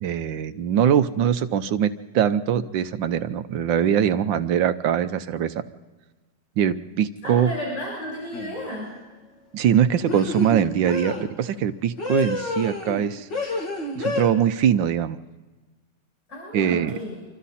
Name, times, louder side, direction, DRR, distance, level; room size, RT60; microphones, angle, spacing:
voice 1, 0.0-5.5 6.6-7.5 9.5-13.3 14.0-15.2 16.5-16.9, right 9 dB, 85° right, 12 dB, 1.5 m, -22 dB
voice 2, 7.2-8.9 16.3-17.2, equal, 40° left, -5 dB, 7.8 m, -33 dB
sound 1, 8.3-8.6 10.1-11.3 12.0-13.0 13.3-14.3, left 3 dB, 70° left, 3.3 m, -29 dB
26.5 x 24.5 x 4.2 m, 1.3 s
omnidirectional pair, 2.0 m